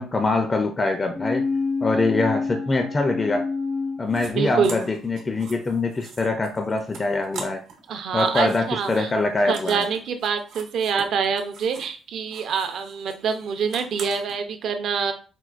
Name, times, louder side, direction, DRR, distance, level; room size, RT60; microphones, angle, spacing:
voice 1, 0.0-1.5 1.8-3.5 4.0-7.6 8.1-9.8, left 3 dB, 25° left, 5 dB, 0.4 m, -24 dB
sound 1, 1.1-4.9 5.2-5.3, left 4 dB, 85° left, 0.8 m, -28 dB
sound 2, 4.1-4.3 4.6-7.9 8.1-12.0 12.3-14.4, right 5 dB, 80° right, 0.9 m, -42 dB
voice 2, 4.3-4.8 7.9-9.1 9.5-15.1, right 6 dB, 65° right, 7 dB, 0.5 m, -25 dB
4.4 x 2.1 x 2.4 m, 0.37 s
cardioid pair, 125°, 0 cm